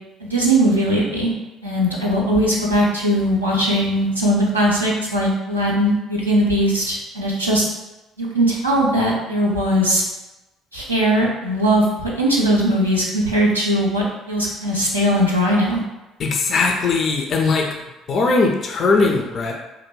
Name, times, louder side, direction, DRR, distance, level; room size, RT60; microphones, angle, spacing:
voice 1, 0.2-1.3 1.6-7.7 8.2-10.0 10.7-15.8, equal, 90° right, -5 dB, 0.4 m, -19 dB
voice 2, 16.2-17.7 18.1-19.5, left 3 dB, 45° left, 2 dB, 0.3 m, -19 dB
2.5 x 2.5 x 2.9 m, 1.0 s
figure-of-eight pair, 50°, 0 cm